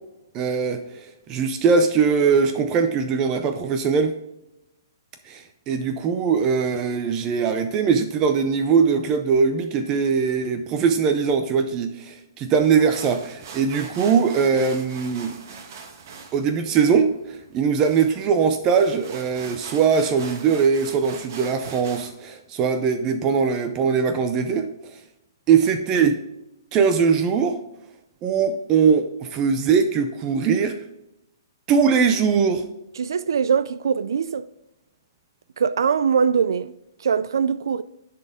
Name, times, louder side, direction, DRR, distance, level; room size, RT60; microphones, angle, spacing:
voice 1, 0.3-4.2 5.3-15.3 16.3-24.7 25.5-26.2 26.7-27.6 28.2-30.8 31.7-32.7, right 6 dB, 25° right, 0.5 m, -21 dB
sound 1, 12.6-22.2, right 5 dB, 45° right, 1.3 m, -42 dB
voice 2, 33.0-34.5 35.6-36.7 37.0-37.8, right 6 dB, 80° right, 0.3 m, -22 dB
10.5 x 4.1 x 3.7 m
hypercardioid pair, 155°, 2 cm